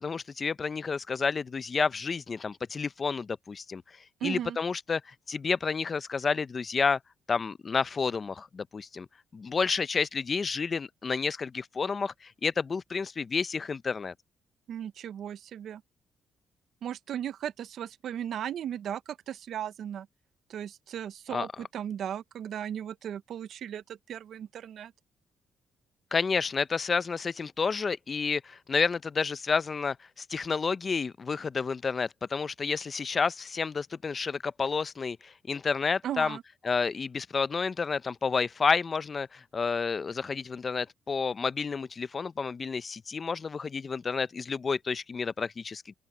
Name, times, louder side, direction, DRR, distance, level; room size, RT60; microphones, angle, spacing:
voice 1, 0.0-3.8 4.2-7.0 7.3-9.1 9.3-14.1 21.3-21.5 26.1-36.4 36.6-45.9, left 5 dB, 35° left, 0.6 m, -30 dB
voice 2, 4.2-4.6 14.7-15.8 16.8-20.1 20.5-24.9 36.0-36.4, right 10 dB, 70° right, 0.6 m, -36 dB
open air
cardioid pair, 90°, 0 cm